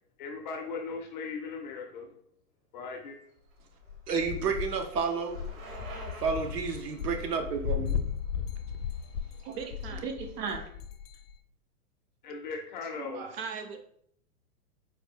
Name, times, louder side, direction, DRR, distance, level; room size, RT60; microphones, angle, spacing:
voice 1, 0.2-2.1 2.7-3.2 12.2-13.3, left 4 dB, 35° left, 1 dB, 0.4 m, -38 dB
Bicycle, 3.3-9.3, right 3 dB, 60° right, 1.0 m, -50 dB
sound 1, 3.8-11.4, left 8 dB, 90° left, 0.5 m, -36 dB
voice 2, 4.1-5.4 6.2-8.0 10.0-10.7, right 5 dB, 85° right, 5 dB, 0.9 m, -31 dB
voice 3, 9.4-10.1 12.9-13.8, right 6 dB, 40° right, 6 dB, 0.5 m, -39 dB
4.0 x 2.2 x 3.5 m, 0.66 s
hypercardioid pair, 145°, 46 cm